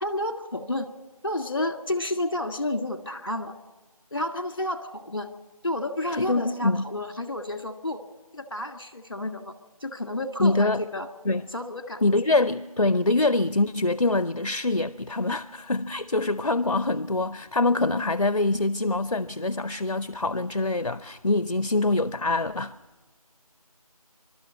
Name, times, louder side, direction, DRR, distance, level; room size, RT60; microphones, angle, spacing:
voice 1, 0.0-0.9 1.2-3.5 4.1-5.3 5.6-8.0 8.3-9.5 9.8-11.1 11.5-12.0, left 1 dB, 40° left, 1.7 m, -30 dB
voice 2, 6.2-6.9 10.4-10.8 11.3-11.4 12.0-22.8, left 2 dB, 55° left, 0.6 m, -24 dB
25.5 x 12.5 x 9.4 m
figure-of-eight pair, 180°, 19 cm